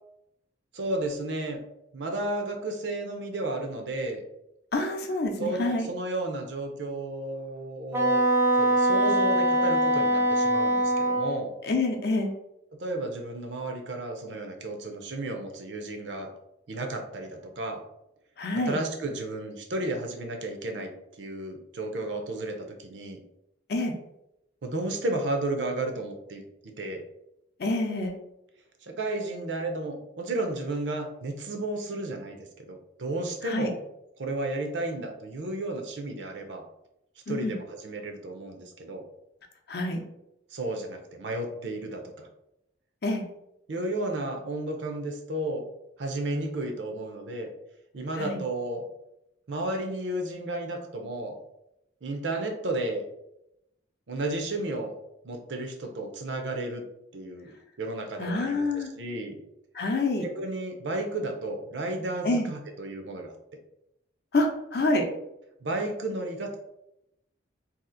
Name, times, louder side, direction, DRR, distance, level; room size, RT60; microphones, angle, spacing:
voice 1, 0.7-1.6 1.9-4.2 5.4-8.2 8.6-11.5 12.8-16.3 16.7-17.8 18.7-20.9 21.2-23.2 24.6-27.0 28.8-33.7 34.2-36.6 37.3-39.0 40.5-42.3 43.7-45.6 46.0-47.5 47.9-48.8 49.5-51.4 52.0-53.0 54.1-54.9 55.2-56.8 57.1-57.5 57.8-59.4 60.2-63.3 65.6-66.6, right 2 dB, 70° right, 4 dB, 0.6 m, -33 dB
voice 2, 4.7-5.9 11.6-12.4 18.4-18.8 23.7-23.9 27.6-28.1 33.4-33.7 37.3-37.5 39.7-40.0 43.0-43.2 48.2-48.4 58.2-58.9 59.7-60.3 62.2-62.5 64.3-65.1, left 2 dB, 55° left, 3 dB, 0.5 m, -27 dB
Wind instrument woodwind instrument, 7.9-11.4, right 1 dB, 10° right, 0.4 m, -23 dB
2.8 x 2.4 x 3.7 m, 0.84 s
head